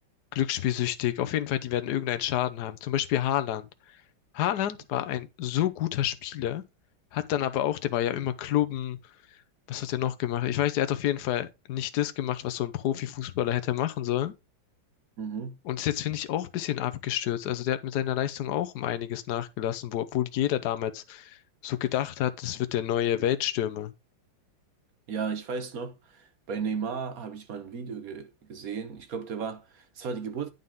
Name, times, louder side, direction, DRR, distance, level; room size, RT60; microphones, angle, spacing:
voice 1, 0.3-3.7 4.3-6.6 7.1-9.0 9.7-14.3 15.7-23.9, left 12 dB, 60° left, 1.2 m, -29 dB
voice 2, 15.2-15.6 25.1-30.5, right 5 dB, 55° right, 1.1 m, -35 dB
9.3 x 5.6 x 3.6 m
omnidirectional pair, 2.3 m